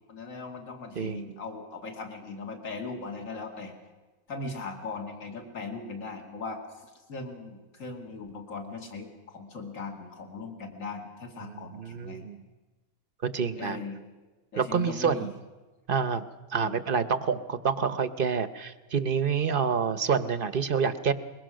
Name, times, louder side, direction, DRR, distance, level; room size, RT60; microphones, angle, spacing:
voice 1, 0.1-3.7 4.3-12.3 13.6-14.0 14.5-15.3 16.5-16.9, left 3 dB, 60° left, 3 dB, 2.8 m, -39 dB
voice 2, 11.4-12.4 13.3-13.8 14.6-15.3 15.9-16.2 16.5-21.1, right 6 dB, 45° right, 12 dB, 0.8 m, -27 dB
22.5 x 21.5 x 6.4 m, 1.2 s
omnidirectional pair, 1.6 m